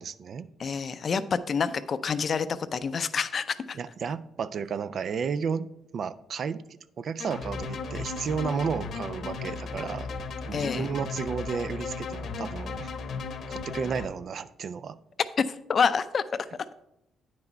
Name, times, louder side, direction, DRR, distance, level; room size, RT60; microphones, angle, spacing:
voice 1, 0.0-0.5 3.8-6.6 7.0-10.1 10.4-12.9 13.5-15.0, right 6 dB, 55° right, 14 dB, 0.4 m, -32 dB
voice 2, 0.6-3.8 10.5-10.9 15.5-16.2, left 6 dB, 45° left, 13 dB, 0.5 m, -28 dB
sound 1, 7.2-14.1, left 4 dB, 65° left, 0.9 m, -35 dB
8.9 x 6.0 x 4.4 m, 0.82 s
cardioid pair, 90°, 0 cm